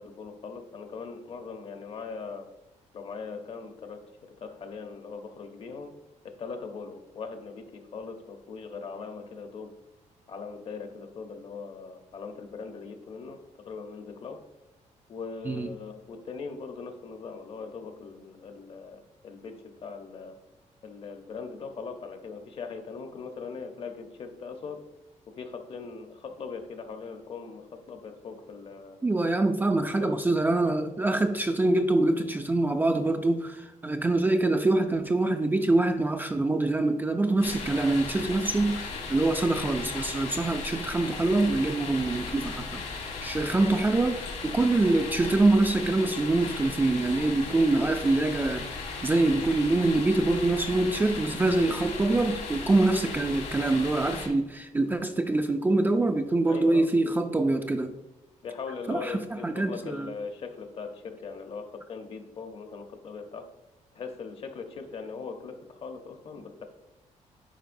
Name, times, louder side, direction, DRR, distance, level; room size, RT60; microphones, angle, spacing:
voice 1, 0.0-2.5 2.9-5.9 6.2-9.7 10.3-14.4 15.1-20.4 20.8-24.9 25.3-29.0 29.8-30.1 56.5-56.9 58.4-63.5 63.9-66.7, left 5 dB, 50° left, 6 dB, 0.8 m, -40 dB
voice 2, 29.0-48.7 49.0-57.9 58.9-60.1, right 2 dB, 15° right, 6 dB, 0.3 m, -25 dB
sound 1, 37.4-54.3, left 4 dB, 70° left, 1.5 m, -37 dB
10.0 x 4.4 x 2.6 m, 0.99 s
cardioid pair, 135°, 13 cm